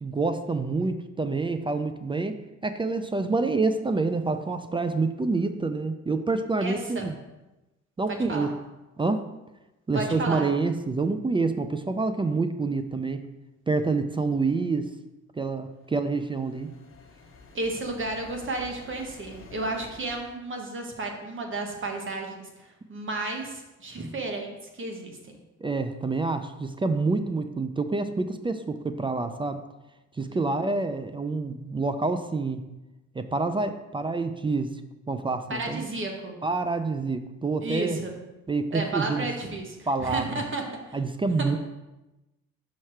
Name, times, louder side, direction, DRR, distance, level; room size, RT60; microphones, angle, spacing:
voice 1, 0.0-7.2 8.0-8.5 9.0-9.3 9.9-13.3 13.7-14.9 15.4-16.7 25.6-29.6 30.2-32.6 33.1-34.8 35.1-35.8 36.4-38.0 38.5-39.3 39.9-40.2 40.9-41.6, right 3 dB, 15° right, 9 dB, 0.3 m, -27 dB
voice 2, 6.6-7.1 8.1-8.5 9.9-10.5 17.5-25.3 30.3-30.6 35.5-36.4 37.6-38.1 38.7-41.0, right 2 dB, 40° right, 2 dB, 1.2 m, -33 dB
sound 1, 15.7-20.4, left 4 dB, 45° left, 1.0 m, -50 dB
5.7 x 4.8 x 4.4 m, 1.0 s
cardioid pair, 90°, 30 cm